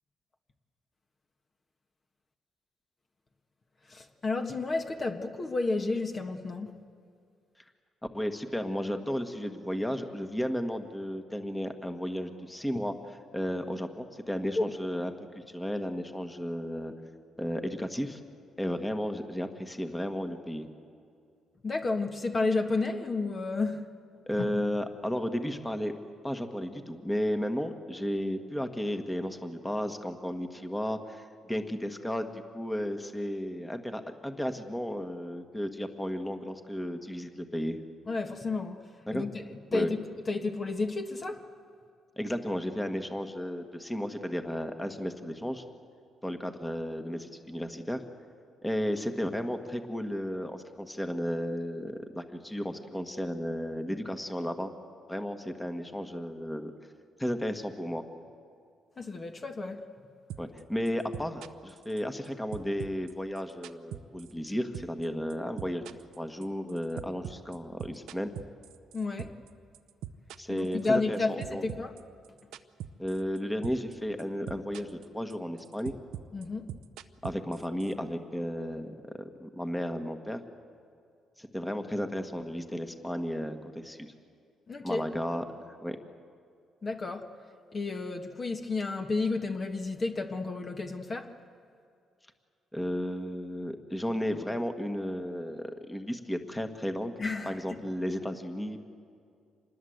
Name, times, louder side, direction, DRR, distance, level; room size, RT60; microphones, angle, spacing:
voice 1, 3.9-6.7 12.7-12.8 14.6-14.7 21.6-23.9 24.4-24.5 38.1-38.8 39.1-39.4 39.7-40.0 40.3-41.5 59.0-59.9 68.9-69.4 70.5-71.9 76.3-76.7 84.7-85.0 86.8-87.3 87.7-91.3 97.2-97.6, left 3 dB, 35° left, 1.5 m, -31 dB
voice 2, 8.1-16.9 17.4-18.2 18.6-20.7 24.3-25.9 26.2-37.8 39.1-39.2 39.7-39.9 42.2-45.6 46.2-48.0 48.6-54.7 55.1-56.7 57.2-58.0 60.4-65.8 66.2-68.3 70.4-71.6 73.0-75.9 77.2-80.4 81.4-84.1 84.8-85.4 85.8-86.0 92.7-97.1 97.4-98.8, equal, 10° left, 1.5 m, -33 dB
sound 1, 60.3-60.6 60.9-62.3 62.5-64.5 64.7-65.0 65.3-69.5 69.7-71.2 71.4-73.4 73.6-73.9 74.2-75.0 75.3-77.9, right 11 dB, 85° right, 0.7 m, -41 dB
26.0 x 20.5 x 8.0 m
cardioid pair, 90°, 0 cm